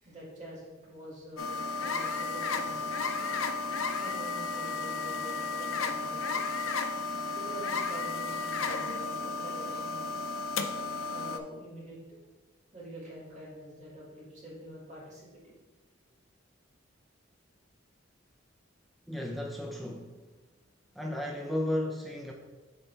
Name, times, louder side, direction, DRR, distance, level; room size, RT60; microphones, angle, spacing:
voice 1, 0.0-3.2 3.5-3.7 4.0-6.4 7.3-10.0 11.1-12.0 12.7-15.6, equal, 40° right, -6 dB, 2.2 m, -46 dB
sound 1, 1.4-11.4, left 4 dB, 85° left, 0.5 m, -33 dB
voice 2, 19.1-20.1 21.0-22.3, left 1 dB, ahead, 0 dB, 0.5 m, -34 dB
8.4 x 4.4 x 3.3 m, 1.2 s
head